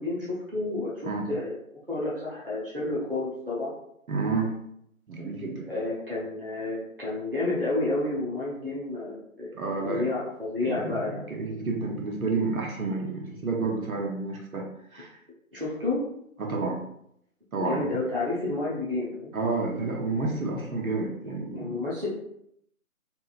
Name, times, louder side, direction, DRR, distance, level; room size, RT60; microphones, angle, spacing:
voice 1, 0.0-1.6 1.9-3.7 5.7-9.5 9.8-11.5 15.5-16.0 17.6-19.3 21.5-22.1, left 2 dB, 40° right, -6 dB, 0.5 m, -30 dB
voice 2, 4.1-4.6 5.1-5.7 9.5-10.1 10.6-15.2 16.4-16.8 17.5-17.8 19.3-21.8, right 3 dB, 75° right, 0 dB, 0.9 m, -30 dB
2.8 x 2.5 x 2.3 m, 0.73 s
figure-of-eight pair, 180°, 43 cm